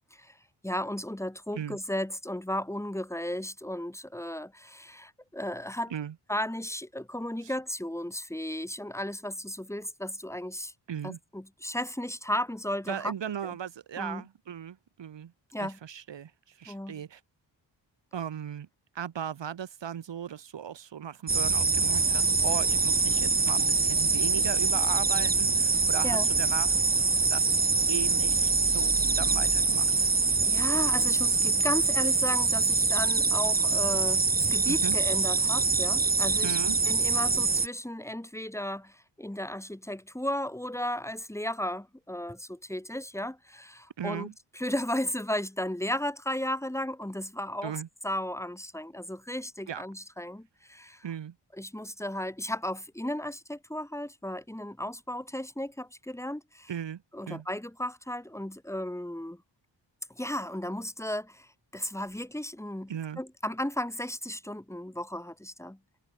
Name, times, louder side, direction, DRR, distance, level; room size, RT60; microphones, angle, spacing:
voice 1, 0.6-5.9 6.3-10.7 11.0-13.1 13.4-13.5 14.0-14.2 15.5-15.8 16.7-17.0 26.0-26.3 30.4-36.6 36.8-47.7 48.0-51.1 51.6-56.7 57.1-59.4 60.1-65.8, left 1 dB, 5° left, 2.9 m, -35 dB
voice 2, 10.9-11.2 12.9-15.3 15.6-17.2 18.1-18.7 18.9-26.8 27.3-27.6 27.9-30.1 34.6-35.0 36.4-36.8 44.0-44.3 47.6-47.9 49.7-49.8 51.0-51.4 56.7-57.0 57.3-57.5 62.9-63.2, right 9 dB, 80° right, 2.0 m, -37 dB
sound 1, 21.3-37.7, right 4 dB, 20° right, 1.0 m, -24 dB
wide cardioid pair, 135°, 43 cm